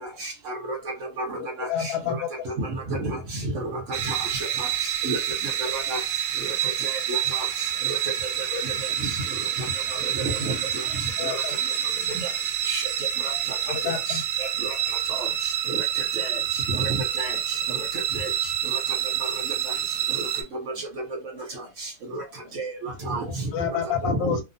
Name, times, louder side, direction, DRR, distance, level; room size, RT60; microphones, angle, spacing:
voice 1, 0.2-0.8 1.3-1.9 2.5-3.7 4.0-4.7 5.0-5.2 5.4-6.0 6.9-7.4 10.4-10.6 12.1-12.3 12.7-12.8 13.2-13.4 14.1-14.7 15.1-15.3 15.7-15.8 16.2-16.3 16.7-16.8 17.2-17.3 18.2-18.3 18.7-18.8 21.8-22.2 22.6-23.2 24.0-24.4, right 2 dB, 60° right, 0.9 m, -31 dB
voice 2, 1.4-2.3 8.5-8.6 11.2-11.6 13.7-14.2 23.3-24.4, left 8 dB, 75° left, 1.0 m, -29 dB
sound 1, 3.9-20.4, right 10 dB, 80° right, 1.1 m, -28 dB
voice 3, 17.5-18.2 19.8-20.2 21.6-21.7 22.1-22.2 22.4-22.5, left 3 dB, 50° left, 1.0 m, -53 dB
2.7 x 2.0 x 2.5 m
omnidirectional pair, 1.7 m